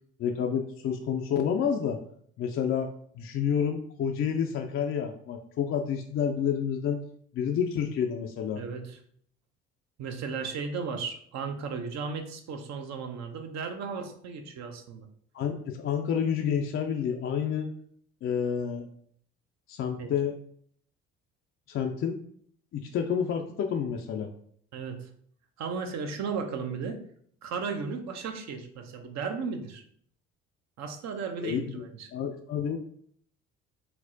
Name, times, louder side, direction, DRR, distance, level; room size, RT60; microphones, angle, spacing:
voice 1, 0.2-2.0 2.4-2.9 3.2-7.0 7.3-8.6 15.3-17.7 18.2-18.9 19.7-20.3 21.7-22.2 22.7-24.3 31.4-31.8 32.1-32.8, left 7 dB, 40° left, 3 dB, 0.4 m, -29 dB
voice 2, 8.6-9.0 10.0-15.1 20.0-20.1 24.7-25.1 25.6-27.0 27.4-29.8 30.8-32.1, right 5 dB, 55° right, 6 dB, 0.6 m, -35 dB
4.3 x 2.0 x 2.6 m, 0.62 s
hypercardioid pair, 55°, 32 cm